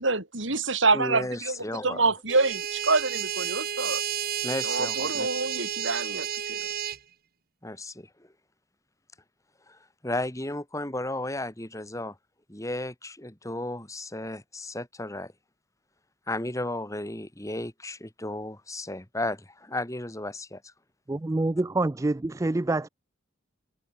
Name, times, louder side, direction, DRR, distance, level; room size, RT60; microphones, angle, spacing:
voice 1, 0.0-1.6 1.8-4.0 4.6-6.7, right 3 dB, 75° right, 5.2 m, -26 dB
voice 2, 0.9-2.0 4.4-5.3 7.6-8.1 9.7-12.2 12.5-15.3 16.3-20.7, left 1 dB, 15° left, 3.0 m, -34 dB
sound 1, 2.3-7.0, right 9 dB, 50° right, 1.7 m, -31 dB
voice 3, 21.1-22.9, right 2 dB, 15° right, 0.4 m, -26 dB
head